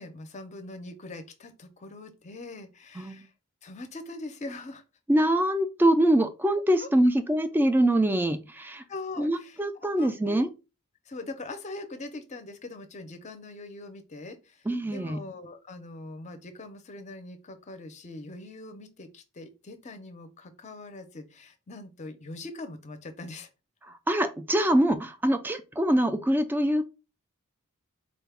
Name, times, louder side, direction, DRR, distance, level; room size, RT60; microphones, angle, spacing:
voice 1, 0.0-3.3 3.6-4.8 6.8-6.9 8.9-9.6 9.9-10.5 11.1-23.5, left 2 dB, 35° left, 0.6 m, -42 dB
voice 2, 5.1-8.8 9.2-10.5 14.7-15.2 23.9-26.8, right 1 dB, 10° right, 0.3 m, -24 dB
3.9 x 2.2 x 3.4 m
head